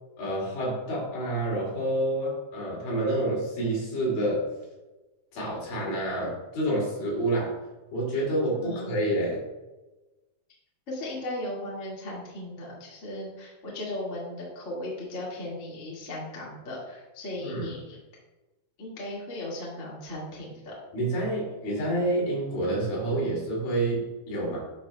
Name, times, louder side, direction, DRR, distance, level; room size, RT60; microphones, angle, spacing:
voice 1, 0.2-4.5 5.3-7.5 7.9-9.4 17.4-17.7 20.9-24.6, right 1 dB, 60° left, -5 dB, 4.3 m, -28 dB
voice 2, 8.6-8.9 10.9-18.0 18.8-20.7, left 1 dB, 30° left, -6 dB, 1.4 m, -37 dB
11.0 x 6.5 x 2.3 m, 1.1 s
omnidirectional pair, 4.8 m